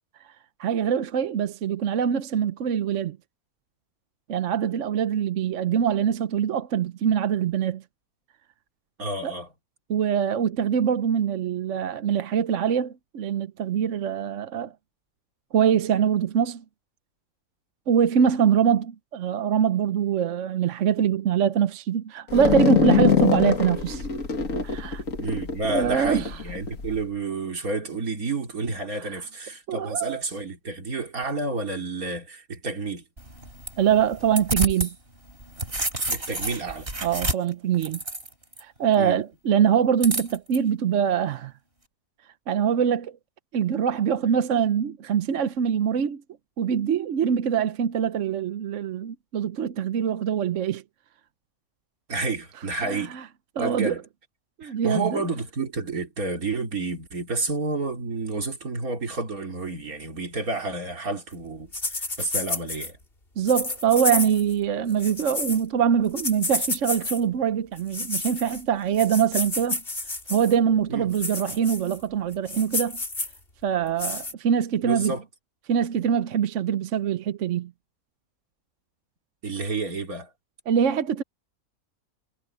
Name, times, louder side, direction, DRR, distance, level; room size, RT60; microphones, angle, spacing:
voice 1, 0.6-3.2 4.3-7.8 9.2-9.3 9.9-14.7 15.5-16.6 17.9-24.1 24.6-25.0 25.7-26.3 29.7-30.2 33.8-34.9 37.0-38.0 38.6-41.5 42.5-43.2 43.5-46.2 46.6-50.8 52.8-53.2 53.6-53.9 54.6-55.2 63.4-69.8 70.3-73.0 73.6-75.1 75.7-77.7 80.7-81.2, right 8 dB, 60° right, 1.1 m, -23 dB
voice 2, 9.0-9.5 25.2-33.0 36.1-36.9 39.0-39.2 52.1-53.2 53.6-54.0 54.6-63.0 70.9-71.1 74.8-75.2 79.4-80.3, right 3 dB, 80° right, 3.4 m, -30 dB
sound 1, 22.3-27.0, left 7 dB, 65° left, 2.5 m, -24 dB
sound 2, 33.2-34.9 35.3-38.6 40.0-40.6, right 1 dB, 40° right, 5.2 m, -30 dB
sound 3, 61.7-62.9 63.5-64.5 64.9-65.6 66.2-67.2 67.8-68.6 68.9-70.5 71.1-72.0 72.3-73.4 74.0-74.3, left 2 dB, 40° left, 3.3 m, -30 dB
omnidirectional pair, 1.5 m